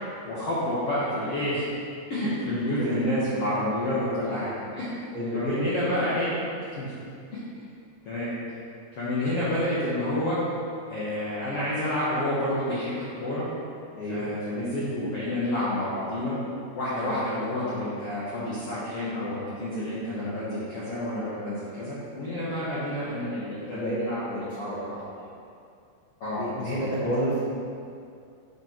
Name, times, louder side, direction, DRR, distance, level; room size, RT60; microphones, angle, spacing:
voice 1, 0.2-1.7 2.1-4.9 5.3-6.4 6.8-6.9 7.3-7.4 8.0-8.3 9.0-10.4 10.9-13.5 14.1-16.4 16.7-25.2 26.2-26.9, left 1 dB, 70° left, -10 dB, 1.4 m, -29 dB
voice 2, 5.1-5.5 13.9-14.3 17.0-17.2 23.7-23.9 24.3-24.4 24.7-24.8 26.4-27.5, equal, 90° left, -10 dB, 1.0 m, -30 dB
7.7 x 6.1 x 4.5 m, 2.4 s
omnidirectional pair, 4.7 m